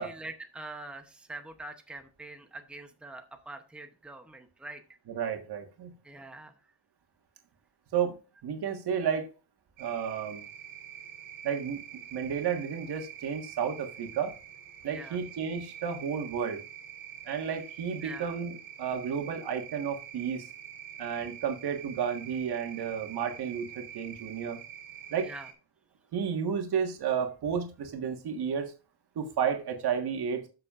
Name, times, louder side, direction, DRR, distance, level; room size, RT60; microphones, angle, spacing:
voice 1, 0.0-4.8 6.0-6.6 14.9-15.2 18.0-18.4 25.2-25.5, right 2 dB, 5° right, 5 dB, 0.8 m, -44 dB
voice 2, 5.1-5.9 7.9-9.3 9.8-10.4 11.4-14.3 14.8-16.6 17.2-20.5 21.0-24.6 25.1-25.3 26.1-28.7 29.1-30.4, right 7 dB, 80° right, 4 dB, 1.6 m, -32 dB
sound 1, 9.8-25.5, right 10 dB, 55° right, 3.1 m, -46 dB
12.5 x 6.7 x 2.5 m, 0.33 s
wide cardioid pair, 170°, 38 cm